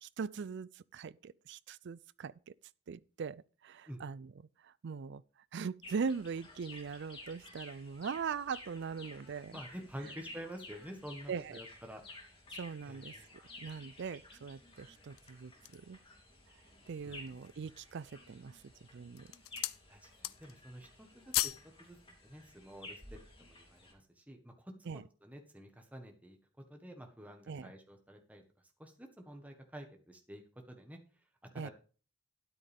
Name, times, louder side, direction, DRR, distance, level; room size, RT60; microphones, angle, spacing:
voice 1, 0.0-2.5 2.9-4.3 4.6-5.2 5.5-9.6 11.3-11.6 12.5-13.1 13.6-16.0 16.9-18.6 18.9-19.3 24.9-25.0 27.5-27.7 31.5-31.7, right 5 dB, 55° right, 0.4 m, -41 dB
sound 1, 5.8-23.9, left 2 dB, 25° left, 3.1 m, -54 dB
voice 2, 9.5-12.0 12.8-13.2 17.0-17.2 19.9-20.9 21.1-21.5 21.8-22.0 22.2-23.0 23.4-24.7 25.2-26.4 26.7-28.4 28.8-30.4 30.7-31.0 31.5-31.7, equal, 5° right, 1.4 m, -49 dB
sound 2, 15.0-16.0 16.6-16.7 17.1-17.7 18.4-18.7 19.1-19.8 20.1-20.6 20.9-21.7 22.0-22.2, left 15 dB, 80° left, 0.5 m, -37 dB
13.0 x 10.0 x 3.5 m
head